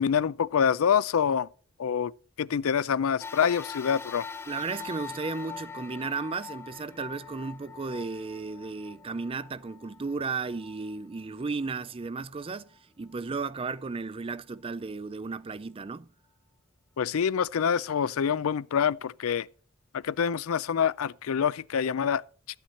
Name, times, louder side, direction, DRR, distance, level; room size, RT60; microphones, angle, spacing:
voice 1, 0.0-1.5 1.8-2.1 2.4-4.3 17.0-19.5 19.9-22.2, left 7 dB, 85° left, 0.4 m, -26 dB
sound 1, 3.2-11.8 12.4-12.5 13.6-13.7, left 5 dB, 10° left, 0.7 m, -43 dB
voice 2, 4.5-16.1, right 4 dB, 25° right, 0.4 m, -34 dB
13.0 x 9.2 x 4.2 m
head